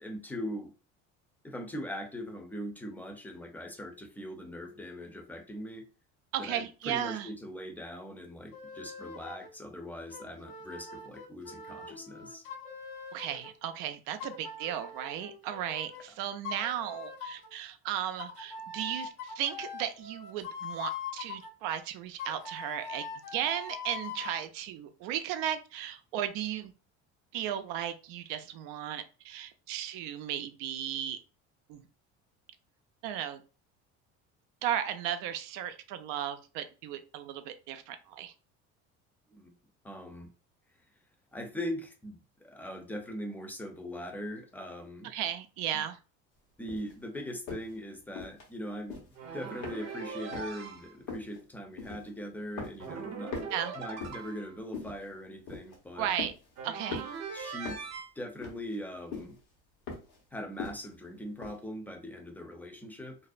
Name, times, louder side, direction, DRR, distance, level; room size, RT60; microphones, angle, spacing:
voice 1, 0.0-0.7 1.4-5.8 6.4-12.5 39.3-39.5 39.8-40.3 41.3-45.1 46.6-49.0 49.3-56.1 57.3-57.8 58.2-59.4 60.3-63.2, equal, 5° left, 4 dB, 0.5 m, -41 dB
voice 2, 6.3-7.3 13.1-26.7 27.3-31.2 31.7-31.8 33.0-33.4 34.6-38.3 45.0-46.0 53.5-53.8 56.0-56.3 56.6-57.1, right 10 dB, 75° right, 9 dB, 0.5 m, -35 dB
sound 1, 8.5-9.5 10.1-13.5 14.2-16.1 16.4-17.5 18.2-21.5 22.2-24.4, left 5 dB, 65° left, 0.7 m, -42 dB
sound 2, 46.7-46.9 47.5-47.7 48.2-48.5 48.8-49.2 49.6-50.1 50.3-50.6 51.1-51.4 51.8-52.2 52.6-53.0 53.3-54.3 54.7-55.1 55.5-55.8 56.2-56.6 56.9-57.2 57.6-58.0 58.4-58.8 59.1-59.4 59.9-60.2 60.6-60.9 61.4-61.6, left 4 dB, 80° left, 1.1 m, -41 dB
sound 3, 49.1-50.9 52.8-54.5 56.6-58.1, right 5 dB, 50° right, 0.7 m, -41 dB
2.6 x 2.1 x 2.4 m, 0.33 s
supercardioid pair, 90°, 35 cm